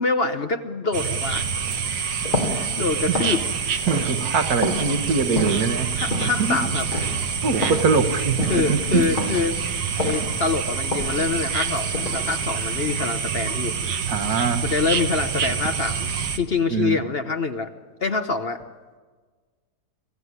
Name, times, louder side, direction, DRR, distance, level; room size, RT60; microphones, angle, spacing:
voice 1, 0.0-1.4 2.5-3.4 5.9-6.9 8.5-9.6 10.0-13.7 14.1-14.2 14.6-16.1 16.4-17.7 18.0-18.6, left 4 dB, 45° left, 8 dB, 1.0 m, -25 dB
sound 1, 0.9-16.4, right 6 dB, 85° right, 1.9 m, -27 dB
sound 2, 1.2-13.4, left 2 dB, 70° left, 3.3 m, -31 dB
voice 2, 3.9-5.9 6.4-6.6 7.4-9.0 10.2-10.3 14.1-14.6 16.7-17.0, right 5 dB, 70° right, 8 dB, 1.8 m, -23 dB
25.5 x 16.0 x 9.7 m, 1.4 s
omnidirectional pair, 1.7 m